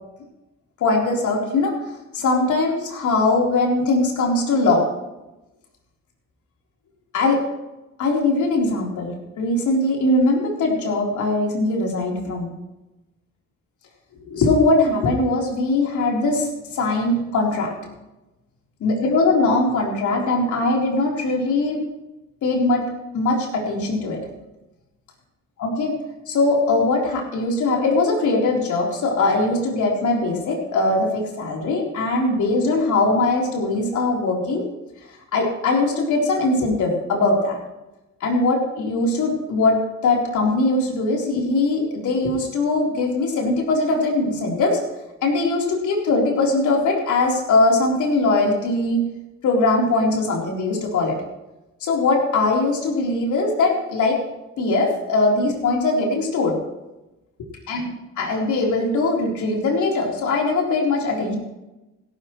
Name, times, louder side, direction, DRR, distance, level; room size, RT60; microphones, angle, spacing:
voice 1, 0.8-1.7 2.1-4.8 7.1-7.4 8.0-12.5 14.3-17.9 18.8-21.8 22.4-22.9 23.1-24.2 25.6-26.0 26.3-34.6 35.3-37.6 38.2-44.8 45.2-49.0 49.4-51.2 51.8-54.2 54.6-56.6 57.7-61.3, left 2 dB, 75° left, -1 dB, 4.0 m, -21 dB
17.0 x 12.0 x 3.2 m, 0.99 s
cardioid pair, 90°, 30 cm